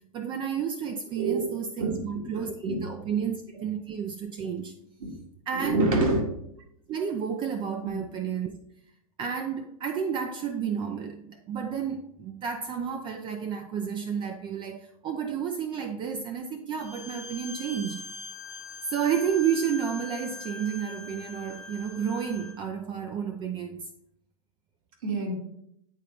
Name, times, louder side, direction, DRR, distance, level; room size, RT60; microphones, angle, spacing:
voice 1, 0.1-4.8 5.5-5.9 6.9-8.6 9.2-18.0 18.9-23.9, right 7 dB, 25° right, 0.4 m, -31 dB
voice 2, 1.2-2.0 2.7-2.8 3.1-3.2 5.0-5.1 5.5-6.2 7.8-8.0 25.0-25.3, right 2 dB, 65° right, 2.2 m, -27 dB
Bowed string instrument, 16.8-22.6, left 4 dB, 20° left, 0.8 m, -42 dB
8.4 x 3.8 x 3.4 m
hypercardioid pair, 110°, 18 cm